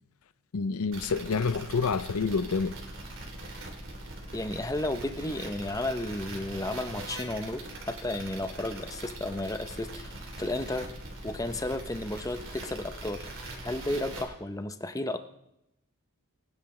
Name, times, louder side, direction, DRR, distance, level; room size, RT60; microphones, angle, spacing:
voice 1, 0.5-2.7, left 5 dB, 80° left, 0.5 m, -28 dB
sound 1, 0.9-14.2, right 2 dB, 55° right, 3.0 m, -42 dB
voice 2, 4.3-10.1 10.4-10.9 11.2-13.3 13.6-15.2, left 1 dB, 15° left, 0.6 m, -33 dB
22.0 x 10.0 x 3.2 m
head